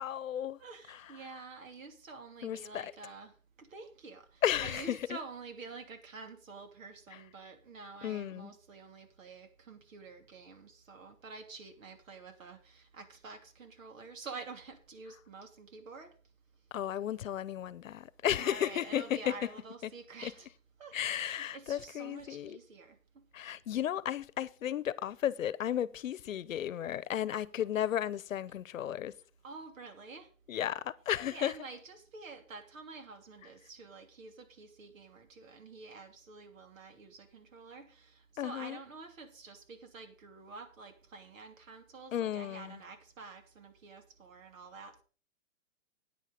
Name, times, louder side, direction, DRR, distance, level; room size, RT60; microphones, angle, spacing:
voice 1, 0.0-0.6 0.9-1.0 2.4-2.9 4.4-5.2 8.0-8.5 16.7-19.3 19.8-19.9 20.2-20.3 20.9-22.6 23.3-29.1 30.5-31.6 38.4-38.8 42.1-42.8, left 10 dB, 70° left, 0.9 m, -34 dB
voice 2, 0.6-16.1 18.4-20.5 20.8-23.2 27.3-27.4 29.4-30.3 31.2-45.0, right 4 dB, 70° right, 2.9 m, -48 dB
9.3 x 9.3 x 5.1 m
hypercardioid pair, 160°, 40 cm